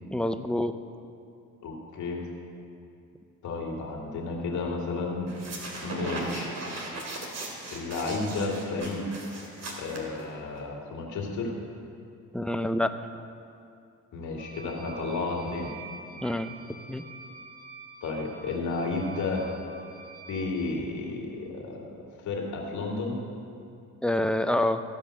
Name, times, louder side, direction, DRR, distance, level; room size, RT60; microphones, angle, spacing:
voice 1, 0.1-0.7 12.3-12.9 16.2-16.5 16.9-17.0 24.0-24.8, left 1 dB, 5° left, 9 dB, 0.4 m, -26 dB
voice 2, 1.6-2.2 3.4-5.3 5.8-6.6 7.7-9.1 9.8-11.5 14.1-15.7 18.0-19.6 20.3-21.8 22.2-23.2, left 3 dB, 75° left, -1 dB, 2.0 m, -32 dB
sound 1, 5.3-10.6, right 2 dB, 60° right, 2.1 m, -37 dB
sound 2, 14.4-20.7, right 4 dB, 30° right, 0.9 m, -47 dB
14.5 x 5.4 x 6.5 m, 2.5 s
cardioid pair, 90°, 30 cm